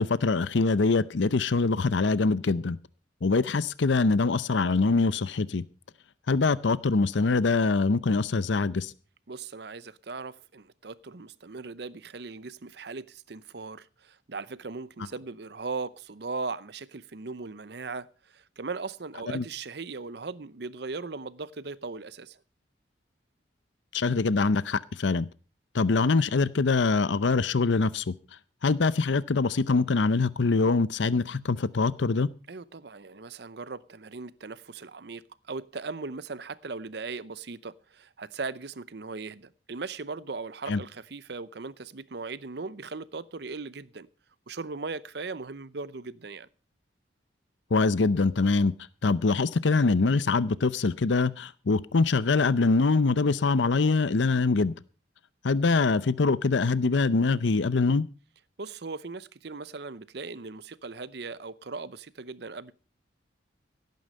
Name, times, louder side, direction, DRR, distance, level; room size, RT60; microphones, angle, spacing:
voice 1, 0.0-2.8 3.2-5.6 6.3-8.9 19.3-19.4 23.9-25.3 25.7-28.1 28.6-32.3 40.7-40.8 47.7-48.7 49.0-54.7 55.4-58.1, left 3 dB, 75° left, 0.6 m, -24 dB
voice 2, 9.3-22.4 32.5-44.1 44.5-46.5 58.6-62.7, right 4 dB, 60° right, 0.7 m, -38 dB
16.5 x 9.4 x 5.4 m
head